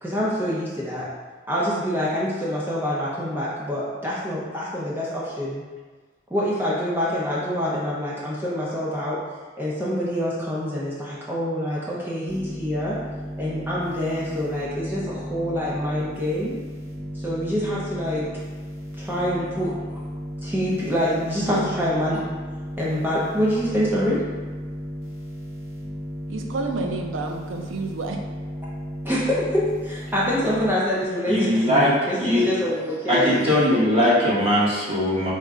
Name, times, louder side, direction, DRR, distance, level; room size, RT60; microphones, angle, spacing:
voice 1, 0.0-1.1 1.5-5.6 6.3-9.2 9.6-13.0 13.4-16.5 17.2-18.2 19.0-20.0 20.4-22.2 22.8-24.2 29.0-33.4 33.9-34.0, equal, 10° right, -7 dB, 0.5 m, -26 dB
sound 1, 12.3-30.7, equal, 30° left, 1.1 m, -35 dB
voice 2, 26.3-28.2, right 3 dB, 75° right, 3 dB, 0.4 m, -29 dB
voice 3, 31.3-31.9 32.2-32.5 33.1-35.3, left 1 dB, 30° right, -7 dB, 0.9 m, -20 dB
3.5 x 2.1 x 3.6 m, 1.4 s
head